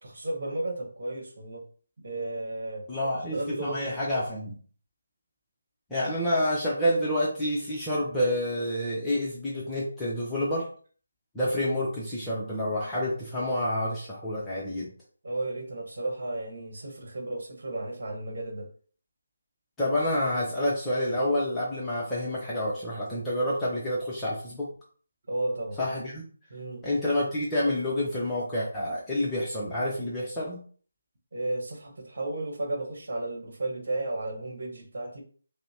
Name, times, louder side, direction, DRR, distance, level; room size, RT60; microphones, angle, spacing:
voice 1, 0.0-1.6 2.0-2.8 3.3-4.2 15.2-18.7 25.3-25.8 26.5-26.8 31.3-35.2, right 2 dB, 50° right, 2 dB, 1.2 m, -33 dB
voice 2, 2.9-4.5 5.9-10.7 11.3-14.9 19.8-24.7 25.8-26.2 26.8-30.6, left 1 dB, 10° left, -8 dB, 0.7 m, -28 dB
5.4 x 2.1 x 2.7 m, 0.44 s
figure-of-eight pair, 150°, 0 cm